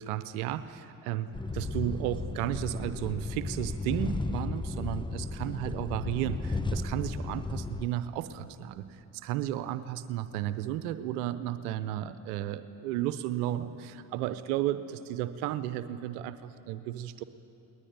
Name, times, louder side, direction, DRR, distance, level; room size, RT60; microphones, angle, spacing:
voice 1, 0.0-17.2, right 12 dB, 85° right, 12 dB, 0.8 m, -33 dB
sound 1, 1.3-7.9, left 3 dB, 10° left, 0.8 m, -34 dB
21.0 x 19.5 x 9.5 m, 2.9 s
hypercardioid pair, 50°, 44 cm